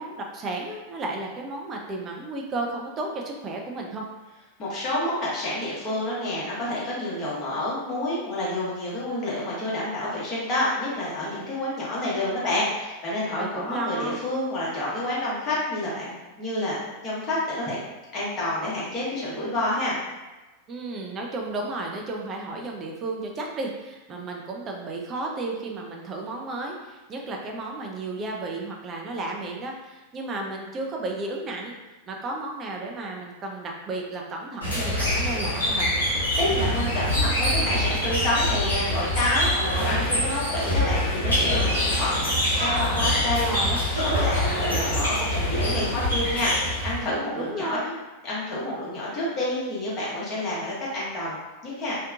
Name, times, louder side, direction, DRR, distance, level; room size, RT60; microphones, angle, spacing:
voice 1, 0.0-4.0 13.4-14.2 20.7-35.9 43.3-43.8 47.4-47.9, right 2 dB, 25° right, 0 dB, 0.5 m, -33 dB
voice 2, 4.6-16.8 17.0-17.8 18.1-19.9 36.3-43.5 43.9-47.8 48.2-51.9, left 1 dB, 30° left, -7 dB, 1.0 m, -28 dB
sound 1, 34.6-47.1, left 1 dB, 75° left, 0.9 m, -25 dB
2.8 x 2.1 x 2.4 m, 1.1 s
figure-of-eight pair, 90°, 0 cm